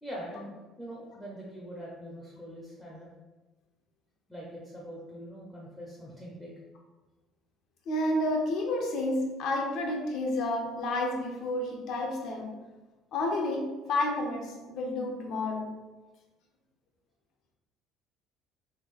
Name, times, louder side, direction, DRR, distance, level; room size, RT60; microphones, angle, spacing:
voice 1, 0.0-3.1 4.3-6.5, equal, 5° left, -5 dB, 0.5 m, -43 dB
voice 2, 7.9-12.5 13.1-15.7, left 1 dB, 50° left, 1 dB, 0.6 m, -30 dB
3.1 x 2.3 x 3.6 m, 1.2 s
cardioid pair, 170°, 0 cm